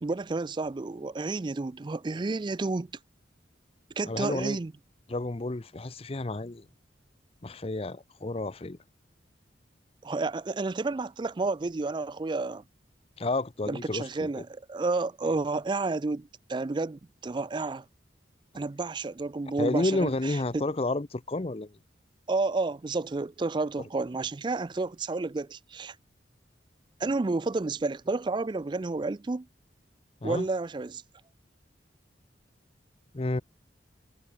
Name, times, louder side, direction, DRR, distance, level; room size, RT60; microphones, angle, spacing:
voice 1, 0.0-2.9 4.0-4.7 10.0-12.6 13.7-17.8 18.5-20.6 22.3-26.0 27.0-29.5 30.2-31.0, right 3 dB, 25° right, 0.4 m, -31 dB
voice 2, 4.1-4.6 5.1-6.7 7.4-8.8 13.2-14.4 19.6-21.8 30.2-30.5 33.1-33.4, left 2 dB, 30° left, 0.7 m, -31 dB
head